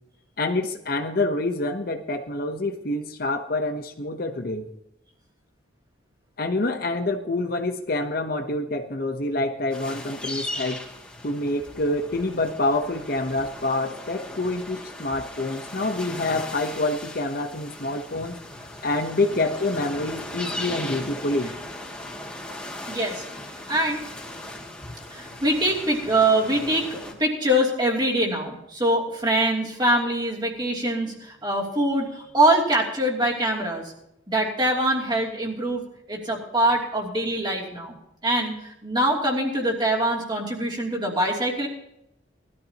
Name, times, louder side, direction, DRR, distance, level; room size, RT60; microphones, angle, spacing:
voice 1, 0.4-4.7 6.4-10.8 11.2-18.4 18.8-21.6, left 2 dB, 50° left, 6 dB, 1.0 m, -27 dB
sound 1, 9.7-27.1, left 1 dB, 5° left, 2.3 m, -38 dB
voice 2, 22.9-23.2 23.7-24.0 25.1-33.9 34.3-35.8 36.1-38.0 38.2-41.7, right 1 dB, 25° right, -2 dB, 2.8 m, -23 dB
20.0 x 13.5 x 2.9 m, 0.82 s
head